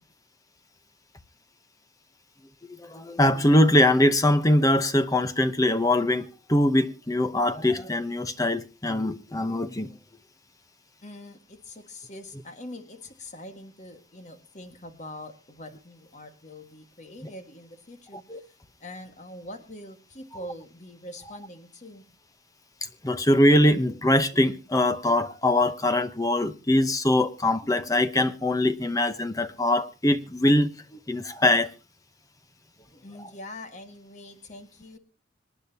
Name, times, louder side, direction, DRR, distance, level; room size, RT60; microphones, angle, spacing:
voice 1, 2.8-9.9 18.3-18.4 23.0-30.7 31.1-31.7, left 1 dB, 20° left, 0.9 m, -22 dB
voice 2, 11.0-22.0 33.0-35.0, left 1 dB, 35° left, 1.7 m, -43 dB
26.0 x 10.0 x 2.8 m
head